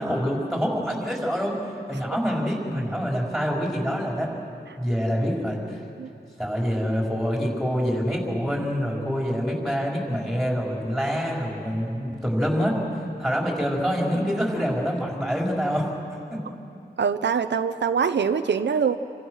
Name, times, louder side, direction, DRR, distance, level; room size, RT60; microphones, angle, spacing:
voice 1, 0.0-1.6 1.9-4.3 4.8-5.8 6.4-12.8 13.2-15.9 16.3-16.4, equal, ahead, -2 dB, 5.0 m, -26 dB
voice 2, 17.0-19.0, right 6 dB, 75° right, 9 dB, 0.7 m, -23 dB
29.0 x 25.5 x 6.4 m, 2.6 s
wide cardioid pair, 135°, 18 cm